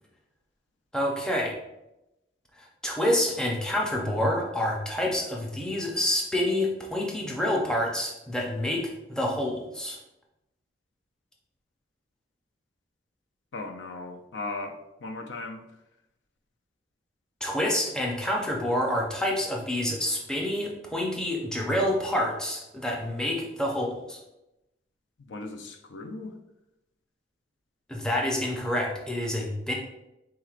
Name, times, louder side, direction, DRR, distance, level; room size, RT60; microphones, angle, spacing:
voice 1, 0.9-1.6 2.6-10.0 17.4-24.2 27.9-29.7, left 1 dB, 5° left, -1 dB, 0.6 m, -28 dB
voice 2, 13.5-15.6 25.3-26.4, left 3 dB, 80° left, 7 dB, 0.4 m, -37 dB
4.5 x 3.8 x 2.4 m, 0.92 s
head